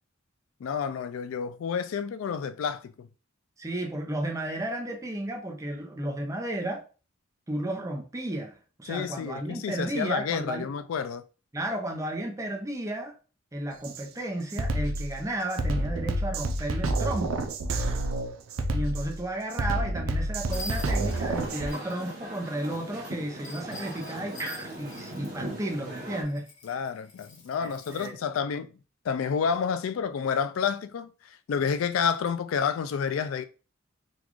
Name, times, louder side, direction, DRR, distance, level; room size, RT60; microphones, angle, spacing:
voice 1, 0.6-3.1 8.9-11.2 26.6-28.7 29.0-33.4, left 6 dB, 85° left, 0.3 m, -29 dB
voice 2, 3.6-6.8 7.5-10.7 11.5-13.1 13.5-17.5 18.7-26.5 27.6-28.2, right 1 dB, 15° right, 0.6 m, -33 dB
Drum kit, 13.8-14.0 14.5-21.7, right 1 dB, 85° right, 0.5 m, -29 dB
sound 1, 20.5-22.0 23.4-25.5 26.2-28.1, left 1 dB, 70° left, 1.3 m, -45 dB
sound 2, 20.5-26.2, right 1 dB, 50° right, 1.0 m, -40 dB
4.0 x 2.3 x 3.0 m
head